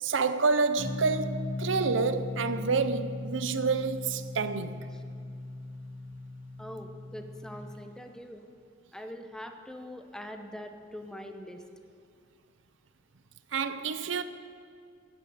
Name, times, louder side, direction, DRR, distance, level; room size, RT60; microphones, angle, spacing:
voice 1, 0.0-4.9 13.5-14.2, right 4 dB, 75° right, 0.6 m, -28 dB
sound 1, 0.8-7.6, left 2 dB, 70° left, 2.1 m, -38 dB
voice 2, 6.6-8.5 8.9-11.6, equal, 5° left, 0.8 m, -43 dB
10.5 x 9.8 x 8.5 m
head